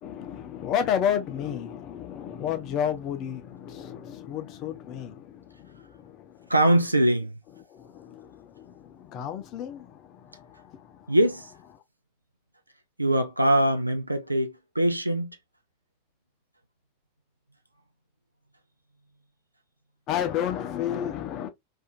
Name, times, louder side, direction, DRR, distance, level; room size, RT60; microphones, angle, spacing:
voice 1, 0.0-11.8 20.1-21.5, left 9 dB, 35° left, 0.6 m, -32 dB
voice 2, 6.5-7.3 11.1-11.4 13.0-15.4, right 1 dB, 85° right, 0.5 m, -22 dB
2.5 x 2.5 x 2.5 m
figure-of-eight pair, 90°, 0 cm